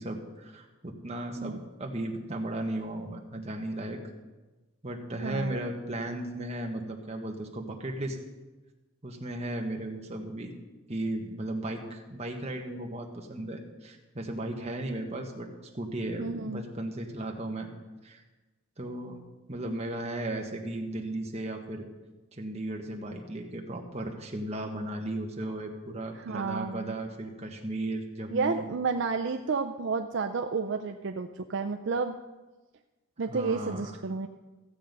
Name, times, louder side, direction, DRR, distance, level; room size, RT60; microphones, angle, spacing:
voice 1, 0.0-4.0 4.8-8.2 9.0-10.5 10.9-15.5 15.7-17.7 18.0-18.2 18.8-19.2 19.5-21.8 22.3-28.6 33.2-33.9, right 1 dB, 30° right, 2 dB, 1.4 m, -35 dB
voice 2, 5.2-5.6 16.2-16.6 26.1-26.9 28.3-32.2 33.2-34.3, right 4 dB, 55° right, 5 dB, 0.5 m, -31 dB
15.0 x 7.7 x 5.4 m, 1.2 s
head